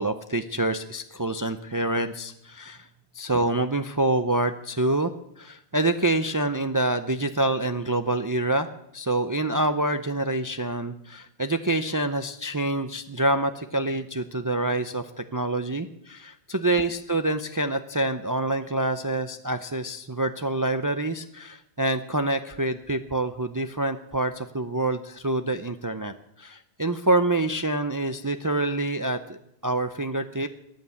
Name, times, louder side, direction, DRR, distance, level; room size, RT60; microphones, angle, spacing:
voice 1, 0.0-2.9 3.1-5.1 5.4-29.4 29.6-30.5, right 2 dB, 25° right, 9 dB, 0.5 m, -26 dB
14.0 x 9.2 x 8.1 m, 0.79 s
omnidirectional pair, 1.1 m